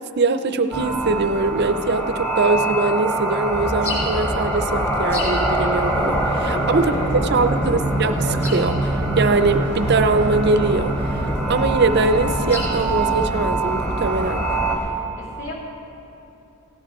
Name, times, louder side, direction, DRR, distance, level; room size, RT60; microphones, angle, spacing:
voice 1, 0.2-14.4, right 3 dB, 50° right, 10 dB, 0.5 m, -22 dB
sound 1, 0.7-14.8, right 2 dB, 10° left, 1.0 m, -24 dB
sound 2, 3.5-14.9, equal, 25° left, 2.7 m, -30 dB
voice 2, 6.3-7.5 15.2-15.5, left 1 dB, 60° left, -5 dB, 2.8 m, -34 dB
16.0 x 10.5 x 4.4 m, 2.9 s
head